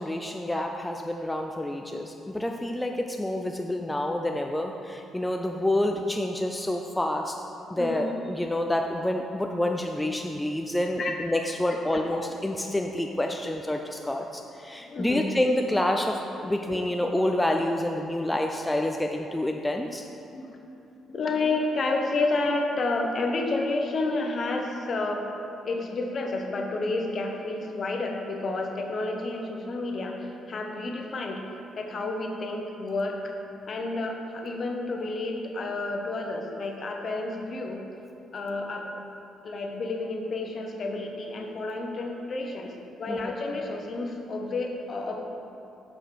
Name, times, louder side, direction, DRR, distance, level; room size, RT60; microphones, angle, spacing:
voice 1, 0.0-7.4 7.7-20.1 38.9-39.0 43.1-43.3, left 1 dB, 10° left, 3 dB, 0.4 m, -28 dB
voice 2, 14.9-15.3 20.3-20.5 21.1-25.3 25.6-30.2 30.5-31.4 31.8-33.2 33.7-37.8 38.3-39.1 39.4-42.7 43.0-45.2, left 2 dB, 45° left, 2 dB, 0.9 m, -30 dB
7.4 x 5.0 x 4.5 m, 2.7 s
cardioid pair, 90°, 0 cm